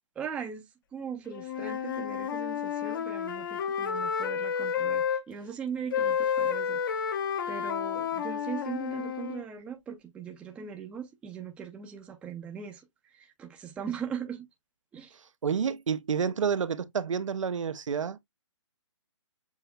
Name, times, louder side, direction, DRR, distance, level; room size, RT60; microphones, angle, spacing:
voice 1, 0.2-0.7 0.9-7.2 7.5-14.5 14.9-15.2, right 7 dB, 5° right, 0.5 m, -39 dB
Wind instrument woodwind instrument, 1.3-5.2 5.9-9.4, left 7 dB, 45° left, 0.8 m, -31 dB
voice 2, 15.4-18.2, right 6 dB, 85° right, 0.7 m, -29 dB
7.1 x 2.9 x 2.2 m
hypercardioid pair, 150°, 16 cm